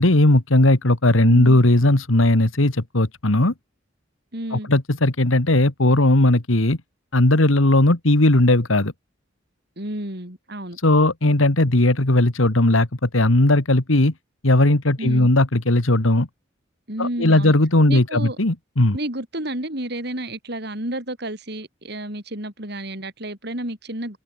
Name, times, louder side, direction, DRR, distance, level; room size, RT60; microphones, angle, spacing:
voice 1, 0.0-3.5 4.5-6.8 7.1-8.9 10.8-14.1 14.4-16.3 17.0-19.0, left 1 dB, 90° left, 2.1 m, -17 dB
voice 2, 1.2-1.6 4.3-4.7 9.8-10.8 15.0-15.3 16.9-17.6 17.9-18.4 18.9-24.2, right 1 dB, 55° right, 5.3 m, -31 dB
head